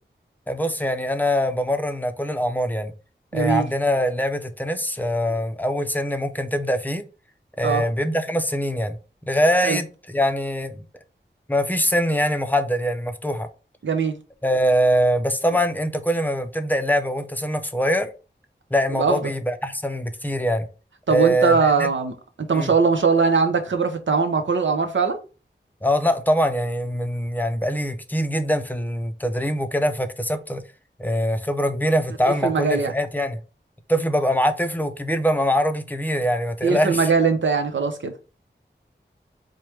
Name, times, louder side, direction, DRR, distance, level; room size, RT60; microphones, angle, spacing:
voice 1, 0.5-2.9 3.3-7.0 7.6-9.0 9.3-10.8 11.5-13.5 14.4-18.1 18.7-20.7 21.1-21.9 22.5-22.7 25.8-30.6 31.0-33.4 33.9-37.1, equal, 10° left, 0.5 m, -23 dB
voice 2, 3.3-3.7 7.6-7.8 9.6-9.8 13.8-14.2 18.9-19.2 21.1-22.1 22.4-25.2 32.2-32.9 36.6-38.1, right 5 dB, 80° right, 0.7 m, -21 dB
4.5 x 2.2 x 3.2 m
wide cardioid pair, 50°, 19 cm